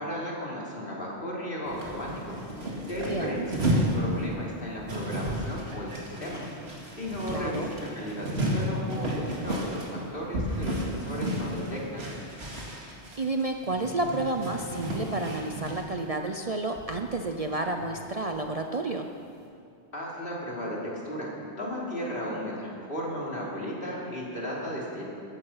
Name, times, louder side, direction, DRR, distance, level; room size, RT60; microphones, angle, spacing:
voice 1, 0.0-2.3 2.9-6.4 7.0-12.0 19.9-21.3 21.6-25.1, equal, 55° left, -4 dB, 3.4 m, -35 dB
sound 1, 1.7-15.9 16.5-16.6 16.7-18.0 18.3-18.4, equal, 65° right, 2.8 m, -33 dB
voice 2, 3.0-3.5 7.3-7.7 12.8-19.1, right 2 dB, 40° right, 4 dB, 0.7 m, -31 dB
15.5 x 14.0 x 5.7 m, 2.5 s
omnidirectional pair, 1.1 m